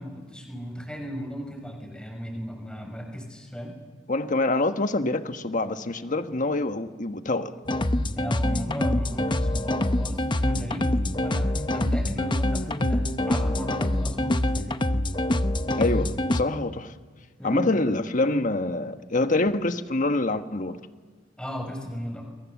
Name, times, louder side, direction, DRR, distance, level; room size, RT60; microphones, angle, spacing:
voice 1, 0.0-3.7 8.2-14.7 17.4-17.6 21.4-22.2, equal, 5° left, 2 dB, 6.2 m, -36 dB
voice 2, 4.1-7.6 15.8-16.9 17.4-20.8, left 2 dB, 45° left, 8 dB, 1.3 m, -26 dB
sound 1, 7.7-16.4, left 1 dB, 25° left, 0.9 m, -25 dB
29.5 x 22.5 x 7.2 m, 1.5 s
head